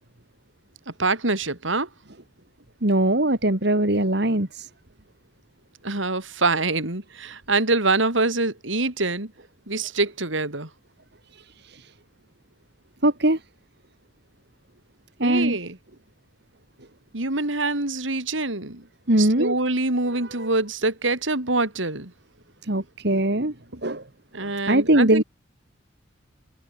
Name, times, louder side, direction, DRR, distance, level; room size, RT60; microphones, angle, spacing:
voice 1, 0.9-1.9 5.8-9.3 9.7-10.7 15.2-15.8 17.1-18.8 19.2-22.1 24.3-25.2, right 3 dB, 80° right, 4.2 m, -25 dB
voice 2, 2.8-4.7 13.0-13.4 15.2-15.6 19.1-19.5 20.1-20.5 22.7-23.5 23.8-24.0 24.4-25.2, right 1 dB, 60° right, 2.7 m, -21 dB
head